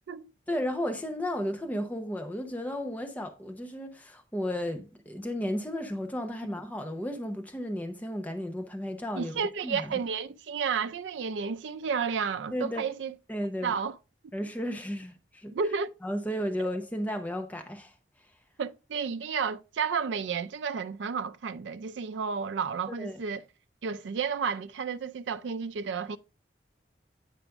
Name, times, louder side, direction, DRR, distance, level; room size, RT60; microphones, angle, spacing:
voice 1, 0.5-9.3 9.6-9.9 12.5-12.8 13.3-13.8 14.3-15.5 16.0-17.9 22.9-23.2, equal, 10° left, 0.7 m, -33 dB
voice 2, 9.1-13.1 13.6-13.9 15.5-15.9 18.6-23.4 23.8-26.2, right 6 dB, 85° right, 0.4 m, -32 dB
9.0 x 5.0 x 3.4 m
head